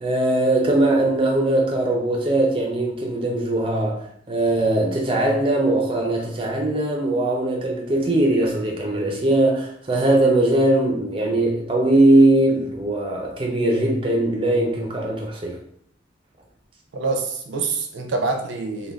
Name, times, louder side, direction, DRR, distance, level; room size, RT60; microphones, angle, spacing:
voice 1, 0.0-4.0 4.3-15.6, right 1 dB, 30° right, 0.5 m, -20 dB
voice 2, 16.9-18.9, right 3 dB, 80° right, 0.5 m, -26 dB
2.5 x 2.2 x 3.4 m
head